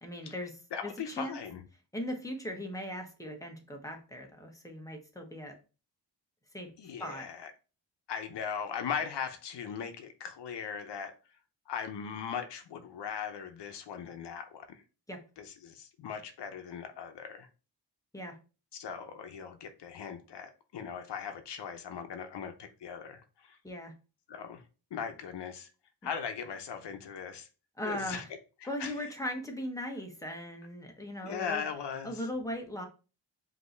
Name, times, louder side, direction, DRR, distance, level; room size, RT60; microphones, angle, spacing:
voice 1, 0.0-1.4 1.9-5.6 6.5-6.7 7.0-7.3 15.1-15.2 18.1-18.4 23.6-23.9 27.8-28.3 28.7-31.6 32.0-32.8, left 1 dB, 10° left, 1.0 m, -38 dB
voice 2, 0.7-1.6 6.8-7.5 8.1-11.1 11.7-14.8 15.4-17.5 18.7-23.6 24.3-24.6 24.9-25.7 26.0-27.5 27.8-28.2 28.8-28.9 31.2-32.2, left 7 dB, 75° left, 0.7 m, -39 dB
5.1 x 2.8 x 3.2 m
wide cardioid pair, 110°, 42 cm